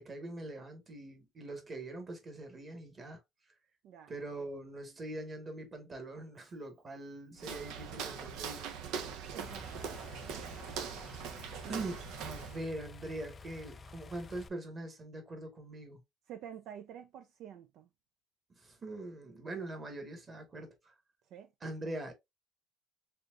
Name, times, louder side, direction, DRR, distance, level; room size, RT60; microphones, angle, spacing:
voice 1, 0.0-3.2 4.1-8.7 11.7-16.0 18.6-20.9 21.6-22.1, right 2 dB, 25° right, 1.5 m, -43 dB
Walk footsteps, 7.4-12.7, right 7 dB, 80° right, 1.0 m, -42 dB
voice 2, 9.3-9.9 10.3-10.9 11.6-11.8 16.3-17.9 21.3-21.5, right 9 dB, 60° right, 0.5 m, -49 dB
sound 1, 9.4-14.5, left 4 dB, 25° left, 0.3 m, -51 dB
4.3 x 3.7 x 2.4 m
cardioid pair, 155°, 0 cm